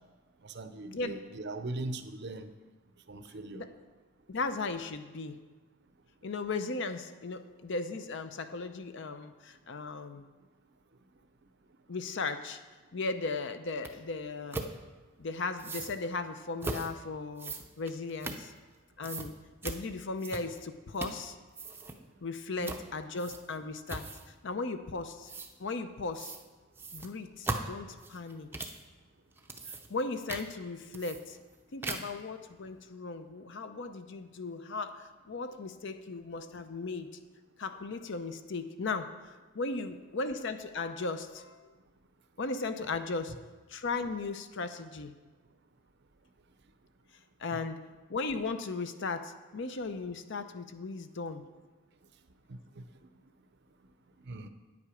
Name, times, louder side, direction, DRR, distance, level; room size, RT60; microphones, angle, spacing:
voice 1, 0.4-2.5 3.1-3.7 22.6-22.7 47.5-47.6 52.5-52.8 54.3-54.5, right 2 dB, 50° right, 8 dB, 0.6 m, -40 dB
voice 2, 4.3-5.4 6.2-10.3 11.9-12.6 12.9-14.6 15.2-18.5 19.0-19.4 19.6-21.4 22.2-25.3 25.6-26.3 26.9-28.7 29.7-31.4 31.7-37.1 37.6-39.1 39.5-41.8 42.4-43.4 43.7-45.1 47.4-47.8 48.1-51.4, left 3 dB, 55° left, 10 dB, 0.6 m, -37 dB
sound 1, 13.8-13.9 14.5-14.7 15.6-15.9 16.6-16.9 17.4-18.8 19.0-19.3 19.6-19.8 20.2-20.6 20.9-21.3 21.5-22.0 22.6-22.8 23.2-23.6 23.9-24.3 25.3-25.5 26.1-26.4 26.8-28.8 29.3-30.0 30.3-30.5 30.9-31.5 31.8-32.2, right 2 dB, 10° right, 0.5 m, -39 dB
9.5 x 8.5 x 4.9 m, 1.3 s
head